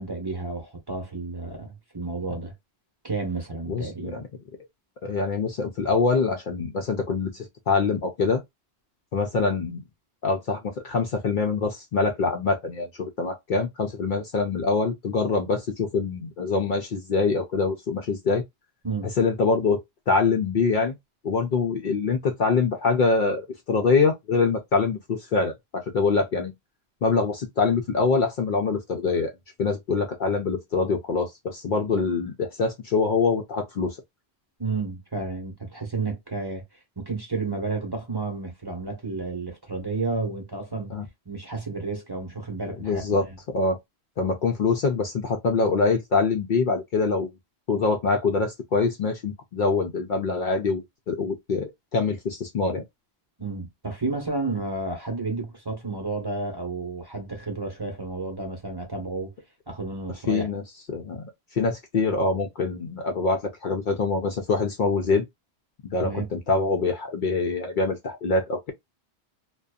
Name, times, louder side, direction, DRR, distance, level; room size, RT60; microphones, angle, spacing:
voice 1, 0.0-2.5 3.0-4.2 18.8-19.1 34.6-36.6 37.0-40.9 41.3-43.4 53.4-59.3 59.7-60.5 66.0-66.3, right 3 dB, 25° right, 0.9 m, -31 dB
voice 2, 3.7-4.2 5.0-8.4 9.1-9.8 10.2-18.4 19.2-21.0 21.2-26.5 27.0-29.3 29.6-34.0 40.9-41.1 42.8-43.8 44.2-47.3 47.7-52.8 60.1-60.6 60.9-65.2 65.8-68.7, left 4 dB, 60° left, 0.6 m, -24 dB
2.5 x 2.2 x 2.2 m
omnidirectional pair, 1.1 m